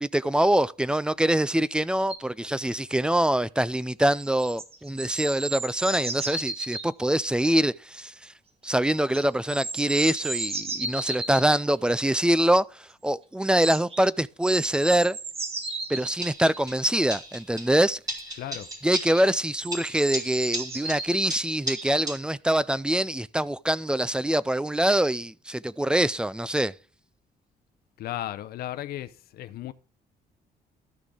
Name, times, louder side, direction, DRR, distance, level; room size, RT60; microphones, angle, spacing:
voice 1, 0.0-8.3 8.6-15.2 15.9-18.0 18.8-26.7, right 1 dB, 5° right, 0.3 m, -24 dB
sound 1, 2.1-2.2 4.2-6.9 9.1-11.6 13.6-14.1 14.4-16.6 18.2-18.3 18.6-18.8 19.6-21.2 21.7-21.9, right 3 dB, 40° right, 1.9 m, -34 dB
sound 2, 16.2-16.8 17.1-17.8 18.1-19.4 19.7-22.2, right 1 dB, 25° right, 2.5 m, -35 dB
voice 2, 18.4-18.7 28.0-29.7, left 13 dB, 85° left, 0.6 m, -35 dB
13.0 x 6.1 x 3.4 m
cardioid pair, 140°, 16 cm